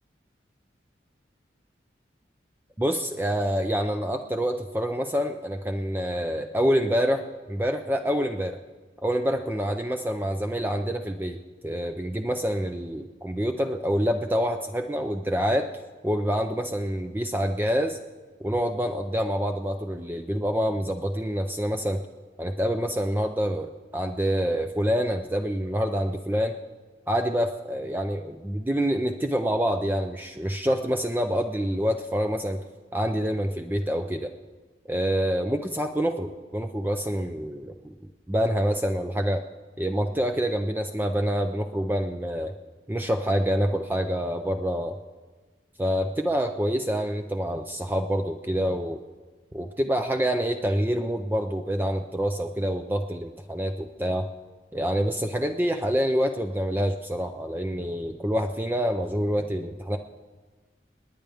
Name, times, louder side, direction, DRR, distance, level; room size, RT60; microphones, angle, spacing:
voice 1, 2.8-8.6 9.0-11.4 11.6-15.7 16.0-18.0 18.4-22.0 22.4-26.5 27.1-32.6 32.9-34.3 34.9-37.9 38.3-39.4 39.8-42.5 42.9-45.0 45.8-49.0 49.5-54.3 54.7-60.0, equal, 10° right, 5 dB, 0.4 m, -26 dB
27.5 x 10.0 x 3.5 m, 1.3 s
head